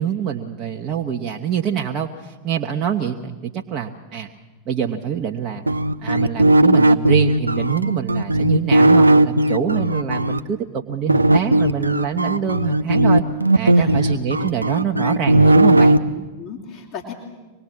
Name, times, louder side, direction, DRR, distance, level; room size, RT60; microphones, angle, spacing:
voice 1, 0.0-4.3 4.6-5.6 6.0-13.2 13.5-16.0, right 8 dB, 35° right, 1 dB, 1.3 m, -25 dB
sound 1, 5.7-10.4 11.1-16.0, right 1 dB, 80° right, 0.7 m, -16 dB
voice 2, 13.7-14.2 16.1-17.1, left 6 dB, 40° left, -2 dB, 3.3 m, -36 dB
25.0 x 20.0 x 7.4 m, 1.2 s
figure-of-eight pair, 90°, 0 cm